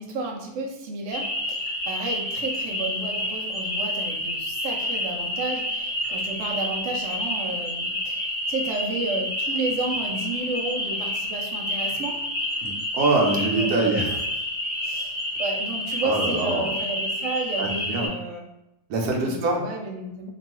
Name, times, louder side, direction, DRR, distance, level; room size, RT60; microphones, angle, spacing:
voice 1, 0.0-12.1 13.4-14.0 14.8-18.4 19.2-20.3, right 3 dB, 65° right, 0 dB, 0.8 m, -32 dB
sound 1, 1.1-18.1, left 1 dB, 45° left, 0.9 m, -29 dB
voice 2, 12.6-14.2 16.0-16.8 17.6-18.2 18.9-19.6, right 2 dB, 85° right, 0 dB, 1.1 m, -24 dB
2.9 x 2.2 x 2.9 m, 0.88 s
omnidirectional pair, 1.6 m